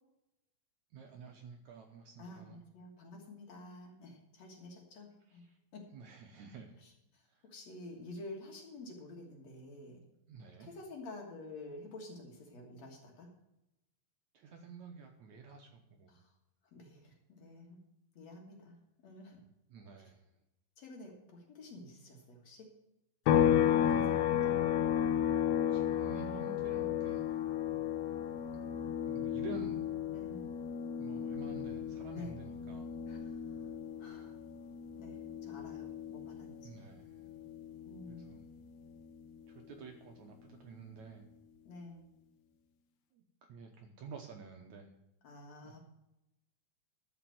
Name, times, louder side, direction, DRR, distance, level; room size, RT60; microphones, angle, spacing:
voice 1, 0.9-2.6 5.9-6.8 10.3-10.7 14.3-16.2 19.7-20.2 25.7-27.4 28.5-28.6 29.0-29.8 31.0-32.9 36.6-37.2 38.1-38.4 39.5-41.3 43.1-44.9 45.6-45.8, right 5 dB, 70° right, 3 dB, 1.9 m, -50 dB
voice 2, 2.2-5.4 5.7-5.9 6.8-10.0 10.6-13.3 16.1-16.3 16.7-17.8 18.1-18.8 19.0-19.4 20.8-22.7 23.9-24.7 30.1-30.6 32.1-32.3 33.1-33.7 34.0-34.4 34.9-36.8 37.9-38.4 41.7-42.1 45.2-45.8, left 2 dB, 55° left, 1 dB, 2.5 m, -50 dB
sound 1, 23.3-36.8 37.1-39.4, left 10 dB, 85° left, 2.6 m, -33 dB
13.0 x 5.1 x 7.7 m, 0.89 s
omnidirectional pair, 4.2 m